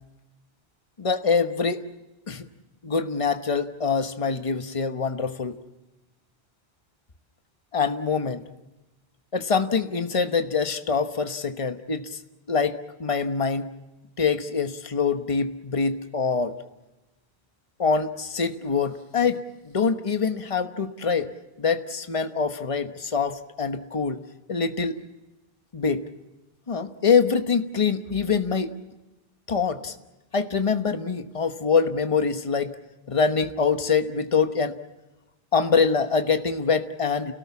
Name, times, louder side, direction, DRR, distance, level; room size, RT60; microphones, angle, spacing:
voice 1, 1.0-1.8 2.3-2.4 2.8-5.6 7.7-8.4 9.3-12.1 12.5-13.7 14.2-16.5 17.8-21.3 21.6-24.2 24.5-25.0 25.7-26.0 26.7-28.7 29.5-29.9 30.3-32.7 33.1-34.7 35.5-37.3, left 5 dB, 35° left, 8 dB, 1.2 m, -24 dB
29.5 x 18.0 x 7.1 m, 1.0 s
omnidirectional pair, 1.0 m